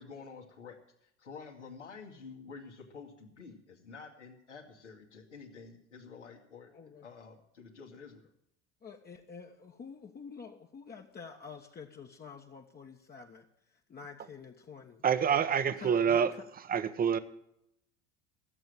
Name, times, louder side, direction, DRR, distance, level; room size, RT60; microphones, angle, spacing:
voice 1, 0.0-8.2, left 5 dB, 80° left, 0 dB, 2.4 m, -49 dB
voice 2, 6.7-7.1 8.8-15.0 15.8-16.4, left 5 dB, 25° left, 1 dB, 1.4 m, -48 dB
voice 3, 15.0-16.3 16.7-17.2, right 7 dB, 25° right, 13 dB, 1.0 m, -26 dB
15.0 x 7.9 x 9.0 m, 0.77 s
figure-of-eight pair, 65°, 36 cm